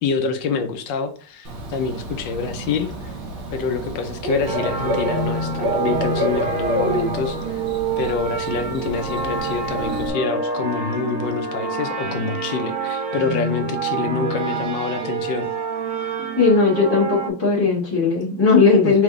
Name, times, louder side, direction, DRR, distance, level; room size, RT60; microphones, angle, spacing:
voice 1, 0.0-3.1 3.5-7.6 8.0-15.5 18.8-18.9, left 5 dB, 75° left, 7 dB, 1.1 m, -26 dB
Bird / Cricket, 1.4-10.1, equal, 65° right, 1.7 m, -29 dB
sound 1, 4.5-17.3, right 4 dB, 85° right, 1.8 m, -27 dB
voice 2, 16.4-19.0, left 4 dB, 20° left, -7 dB, 0.8 m, -17 dB
4.0 x 3.4 x 3.6 m, 0.42 s
omnidirectional pair, 2.4 m